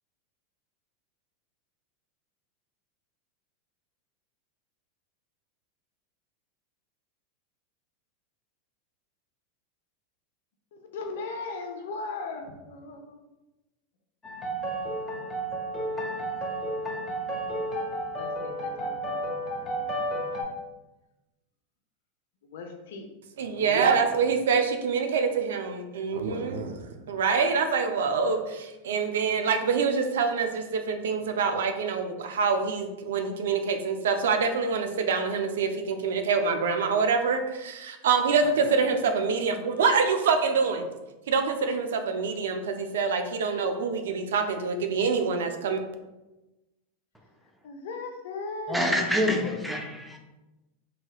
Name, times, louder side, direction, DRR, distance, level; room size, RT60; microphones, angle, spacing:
voice 1, 10.7-13.2 18.2-19.2 19.5-20.0 22.5-23.1 38.4-38.7 47.6-49.5, left 3 dB, 75° left, 4 dB, 0.5 m, -38 dB
sound 1, 14.2-20.4, right 1 dB, 15° left, 0.8 m, -32 dB
voice 2, 23.4-40.9 41.3-45.8, right 5 dB, 80° right, 6 dB, 0.4 m, -26 dB
voice 3, 48.7-50.2, equal, ahead, 2 dB, 0.5 m, -26 dB
3.1 x 2.8 x 2.3 m, 1.0 s
hypercardioid pair, 115°, 0 cm